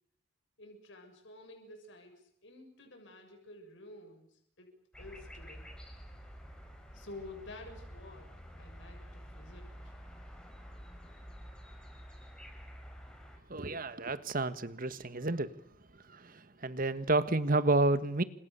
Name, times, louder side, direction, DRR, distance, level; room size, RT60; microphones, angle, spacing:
voice 1, 0.6-5.8 6.9-9.9 16.9-17.2, left 2 dB, 60° left, 3 dB, 7.3 m, -51 dB
sound 1, 4.9-13.4, equal, 5° left, 4.9 m, -49 dB
voice 2, 13.5-15.5 16.1-18.2, right 2 dB, 40° right, 13 dB, 1.5 m, -30 dB
30.0 x 26.5 x 7.0 m, 0.68 s
head